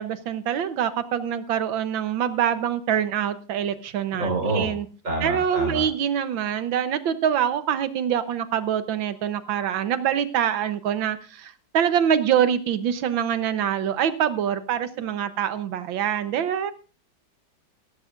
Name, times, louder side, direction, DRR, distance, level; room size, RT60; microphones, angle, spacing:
voice 1, 0.0-4.9 5.2-16.7, right 9 dB, 90° right, 12 dB, 1.7 m, -25 dB
voice 2, 4.2-4.7 5.0-5.8, right 2 dB, 40° right, 1 dB, 4.9 m, -26 dB
16.5 x 14.0 x 2.5 m, 0.35 s
omnidirectional pair, 2.1 m